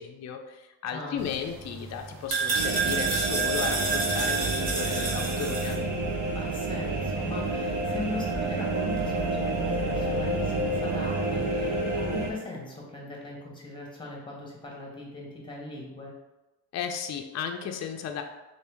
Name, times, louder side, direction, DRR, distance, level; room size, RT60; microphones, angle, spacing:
voice 1, 0.0-5.8 16.7-18.2, left 7 dB, 45° left, 4 dB, 0.4 m, -35 dB
voice 2, 0.9-1.3 6.3-16.1, left 2 dB, 15° left, -2 dB, 1.1 m, -39 dB
sound 1, 1.2-5.7, right 4 dB, 70° right, 1.1 m, -30 dB
sound 2, 2.5-12.3, right 2 dB, 50° right, 0.9 m, -29 dB
2.9 x 2.7 x 3.4 m, 1.0 s
cardioid pair, 80°, 37 cm